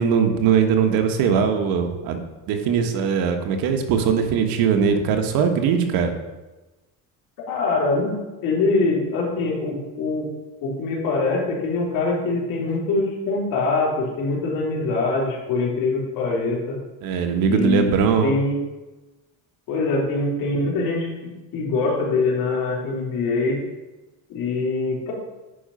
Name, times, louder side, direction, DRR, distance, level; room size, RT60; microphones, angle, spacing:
voice 1, 0.0-2.2 2.5-6.1 17.0-18.3, right 6 dB, 65° right, 5 dB, 1.3 m, -20 dB
voice 2, 7.5-8.2 8.4-10.3 10.6-16.8 17.4-17.9 18.2-18.6 19.7-21.1 21.5-23.6 24.3-25.1, left 3 dB, 60° left, -3 dB, 3.3 m, -23 dB
10.0 x 5.0 x 5.6 m, 1.1 s
cardioid pair, 155°, 38 cm